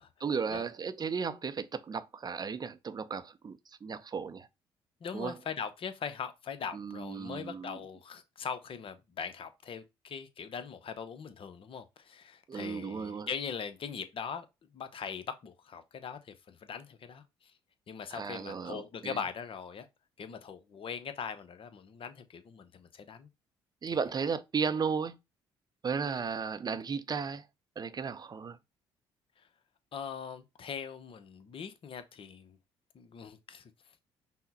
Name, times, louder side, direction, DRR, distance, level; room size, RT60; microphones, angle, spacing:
voice 1, 0.2-4.5 5.1-5.4 6.7-7.8 12.5-13.3 18.1-19.2 23.8-25.2 25.8-27.4 27.8-28.6, right 5 dB, 35° right, 0.5 m, -35 dB
voice 2, 5.0-14.5 14.7-17.5 17.9-19.9 20.2-23.3 23.9-24.0 26.0-26.3 29.4-29.5 29.9-32.6 32.9-33.7, left 6 dB, 45° left, 0.7 m, -41 dB
5.6 x 2.1 x 4.0 m
hypercardioid pair, 50°, 12 cm